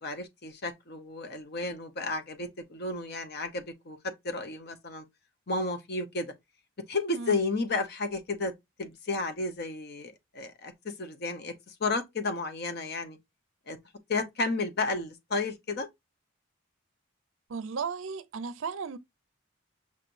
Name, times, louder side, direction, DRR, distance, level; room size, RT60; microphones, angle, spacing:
voice 1, 0.0-5.0 5.5-6.3 6.9-8.5 8.8-13.2 13.7-13.8 14.1-15.9, left 3 dB, 50° left, 0.9 m, -32 dB
voice 2, 17.5-19.0, right 5 dB, 70° right, 0.5 m, -35 dB
5.7 x 3.1 x 2.5 m
head